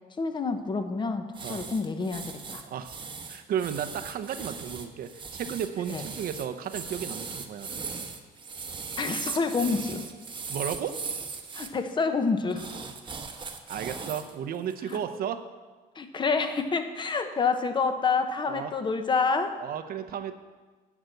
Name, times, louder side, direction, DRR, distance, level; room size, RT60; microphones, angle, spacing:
voice 1, 0.2-2.6 5.9-6.0 9.0-10.0 11.5-12.6 15.9-19.5, left 4 dB, 30° left, 8 dB, 0.9 m, -28 dB
sound 1, 1.3-11.7 12.5-14.3 14.7-15.0, right 5 dB, 30° right, 1.0 m, -38 dB
voice 2, 2.6-3.0 3.3-7.7 10.5-11.0 13.7-15.4 18.5-18.7 19.6-20.4, right 9 dB, 60° right, 9 dB, 0.8 m, -33 dB
9.2 x 5.9 x 7.8 m, 1.3 s
cardioid pair, 110°, 17 cm